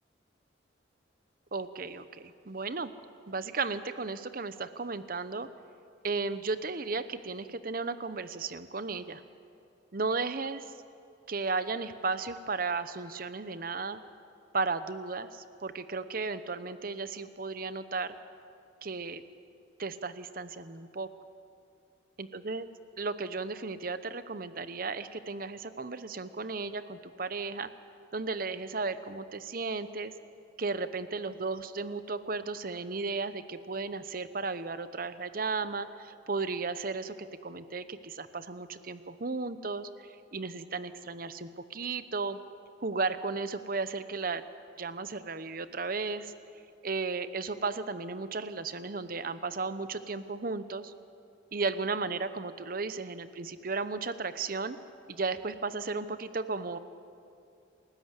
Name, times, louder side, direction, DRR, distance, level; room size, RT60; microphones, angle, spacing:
voice 1, 1.5-2.9 3.3-5.5 6.0-9.2 9.9-10.6 11.3-14.0 14.5-18.2 18.8-19.2 19.8-21.1 22.2-22.7 23.0-27.7 28.1-30.1 30.6-37.1 37.4-42.4 42.8-44.4 44.8-46.3 46.8-50.9 51.5-54.8 55.1-56.8, right 4 dB, 50° right, 12 dB, 0.8 m, -34 dB
29.0 x 13.0 x 8.2 m, 2.5 s
head